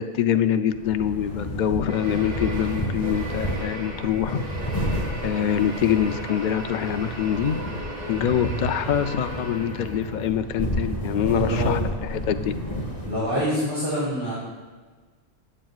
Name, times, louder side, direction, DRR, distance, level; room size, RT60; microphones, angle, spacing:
voice 1, 0.0-4.5 4.8-7.6 8.1-12.6, left 9 dB, 70° left, 9 dB, 0.4 m, -25 dB
sound 1, 0.7-13.5, equal, 20° left, 1.2 m, -31 dB
sound 2, 1.9-10.2, right 1 dB, 70° right, 2.1 m, -37 dB
voice 2, 11.3-11.8 13.0-14.3, equal, 20° right, -8 dB, 2.6 m, -26 dB
17.0 x 7.6 x 2.4 m, 1.4 s
omnidirectional pair, 1.3 m